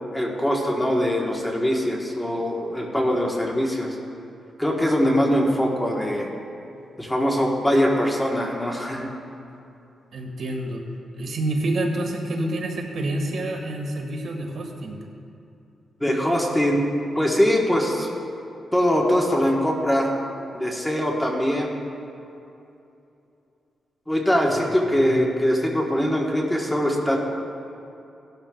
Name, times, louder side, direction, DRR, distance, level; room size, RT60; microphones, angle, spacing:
voice 1, 0.1-4.0 4.6-6.3 7.0-9.1 16.0-16.8 17.1-18.1 18.7-20.1 20.5-21.7 24.1-27.2, equal, 5° left, -1 dB, 1.3 m, -22 dB
voice 2, 10.1-10.8 11.2-15.0 24.5-24.6 24.8-25.2, right 1 dB, 60° right, 1 dB, 1.6 m, -28 dB
18.0 x 12.0 x 2.3 m, 2.7 s
wide cardioid pair, 155°, 0 cm